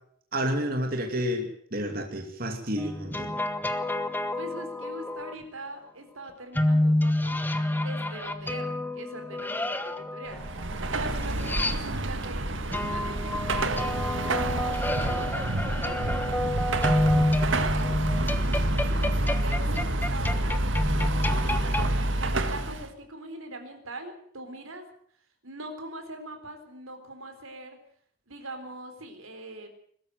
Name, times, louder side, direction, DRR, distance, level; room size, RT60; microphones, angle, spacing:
voice 1, 0.3-3.3, equal, 45° right, 3 dB, 2.7 m, -30 dB
sound 1, 2.8-5.3 6.5-12.2 12.7-21.9, left 1 dB, 10° left, 1.1 m, -29 dB
voice 2, 4.3-7.5 7.8-10.4 10.9-16.6 17.0-17.8 18.8-21.1 21.4-24.9 25.4-27.8 28.3-29.7, right 1 dB, 85° right, 6 dB, 4.0 m, -42 dB
Car passing by / Traffic noise roadway noise / Engine, 10.3-22.9, right 1 dB, 65° right, 1.8 m, -28 dB
22.0 x 13.0 x 9.2 m, 0.64 s
head